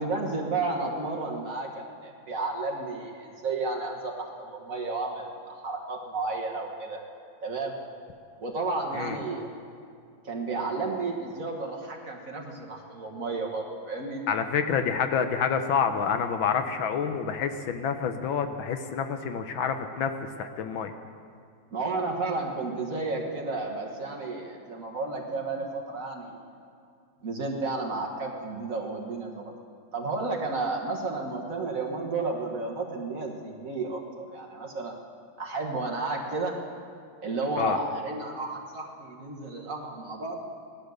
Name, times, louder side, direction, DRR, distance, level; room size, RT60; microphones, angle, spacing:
voice 1, 0.0-7.0 7.4-7.7 8.4-9.5 10.2-14.3 21.7-26.4 27.2-29.5 29.9-35.0 35.4-36.6 37.2-40.4, right 3 dB, 40° right, 0 dB, 1.7 m, -32 dB
voice 2, 14.3-20.1 20.4-20.9 37.6-37.8, left 7 dB, 70° left, 8 dB, 1.5 m, -28 dB
18.0 x 12.0 x 6.5 m, 2.3 s
omnidirectional pair, 2.4 m